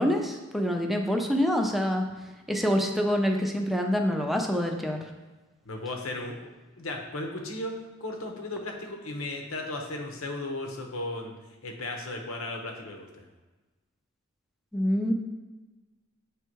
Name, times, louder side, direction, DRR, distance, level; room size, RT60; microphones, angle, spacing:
voice 1, 0.0-2.0 2.5-5.0 14.7-15.1, equal, ahead, 2 dB, 0.6 m, -26 dB
voice 2, 5.6-6.5 6.8-7.7 8.0-11.4 11.6-13.3, left 2 dB, 80° left, 2 dB, 1.1 m, -35 dB
8.1 x 3.4 x 4.7 m, 1.2 s
head